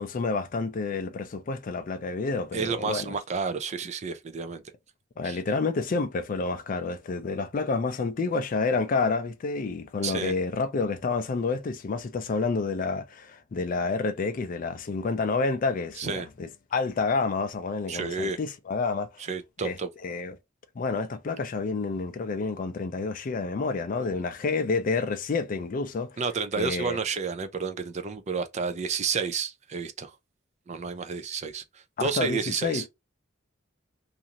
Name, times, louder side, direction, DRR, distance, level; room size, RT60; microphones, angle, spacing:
voice 1, 0.0-3.1 5.2-19.2 19.6-19.7 20.0-20.3 20.8-26.2 26.6-27.0 32.0-32.8, left 4 dB, 40° left, 0.3 m, -29 dB
voice 2, 2.5-4.6 5.2-5.4 10.0-10.3 16.0-16.3 17.9-18.4 19.2-19.9 26.2-30.1 30.7-32.8, right 5 dB, 35° right, 0.4 m, -30 dB
2.6 x 2.5 x 2.8 m
head